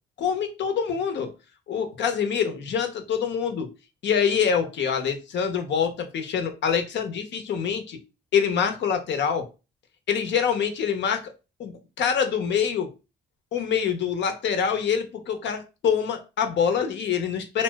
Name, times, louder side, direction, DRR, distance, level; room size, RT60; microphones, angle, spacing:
voice 1, 0.2-1.3 1.7-3.7 4.0-8.0 8.3-9.5 10.1-11.3 11.6-11.7 12.0-12.9 13.5-17.6, left 7 dB, 65° left, 0.7 m, -25 dB
2.7 x 2.0 x 3.3 m
cardioid pair, 90°, 20 cm